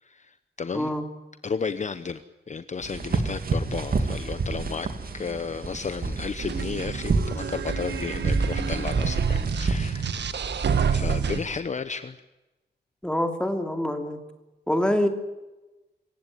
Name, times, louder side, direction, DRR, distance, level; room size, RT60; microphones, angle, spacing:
voice 1, 0.0-0.9 1.4-2.2 2.5-4.9 5.1-10.1 10.6-12.2, left 5 dB, 40° left, 12 dB, 0.9 m, -33 dB
voice 2, 0.7-1.0 13.0-14.2 14.7-15.1, left 1 dB, 5° left, 5 dB, 2.9 m, -25 dB
sound 1, 2.8-11.6, right 3 dB, 55° right, 2.5 m, -29 dB
sound 2, 6.4-11.4, right 6 dB, 75° right, 1.5 m, -28 dB
26.0 x 16.0 x 9.4 m, 1.1 s
wide cardioid pair, 135°, 18 cm